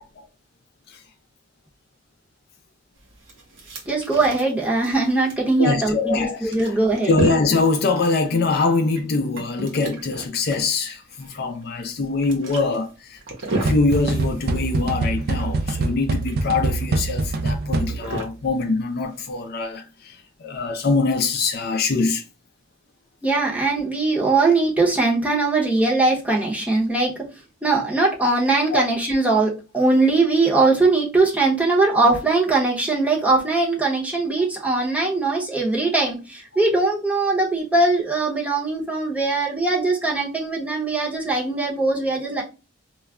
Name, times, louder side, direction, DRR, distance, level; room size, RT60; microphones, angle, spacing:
sound 1, 3.0-19.5, right 1 dB, 65° right, 0.9 m, -34 dB
voice 1, 3.9-7.1 23.2-27.3 27.6-42.4, right 3 dB, 5° right, 0.7 m, -21 dB
voice 2, 5.6-6.8 7.1-13.2 13.6-22.2 28.7-28.8, left 3 dB, 50° left, 0.4 m, -23 dB
sound 2, 13.7-18.3, right 3 dB, 50° right, 0.3 m, -24 dB
2.3 x 2.0 x 3.5 m
head